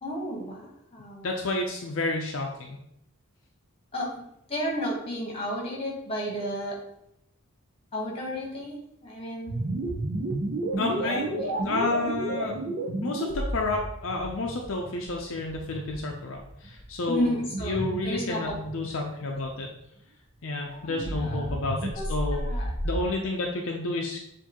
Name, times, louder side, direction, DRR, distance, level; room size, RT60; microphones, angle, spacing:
voice 1, 0.0-1.3 3.9-4.1 4.5-6.8 7.9-9.6 11.0-11.5 17.1-17.8 18.0-18.6 20.7-21.6 21.9-22.0 22.3-22.7, equal, 25° left, -2 dB, 1.2 m, -32 dB
voice 2, 1.2-2.8 10.8-11.2 11.6-12.6 13.0-19.7 20.4-22.4 22.8-24.2, left 2 dB, 60° left, 1 dB, 0.5 m, -30 dB
sound 1, 9.5-19.6 20.9-23.0, right 1 dB, 45° right, 0.7 m, -32 dB
6.9 x 2.6 x 2.9 m, 0.79 s
head